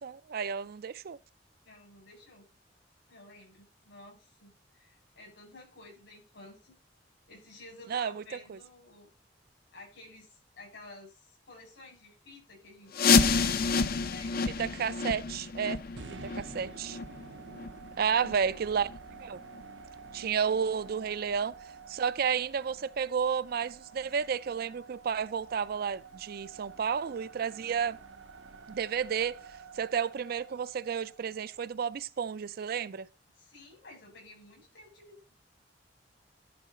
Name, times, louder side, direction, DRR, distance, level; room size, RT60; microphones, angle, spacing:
voice 1, 0.0-1.2 7.9-8.2 8.5-8.6 14.6-15.8 16.2-17.0 18.0-18.9 19.2-19.4 20.1-21.6 21.9-28.0 28.7-29.4 29.7-33.1, right 7 dB, 55° right, 0.4 m, -31 dB
voice 2, 1.6-2.4 3.1-6.7 7.3-9.1 9.7-14.5 18.0-18.6 33.3-35.3, left 2 dB, 80° left, 6.4 m, -52 dB
sound 1, 12.9-18.5 18.9-19.0 19.5-19.6 20.2-20.3 20.9-21.0, left 5 dB, 55° left, 0.6 m, -29 dB
sound 2, 16.0-32.1, right 5 dB, 85° right, 0.8 m, -50 dB
11.5 x 4.0 x 5.6 m
head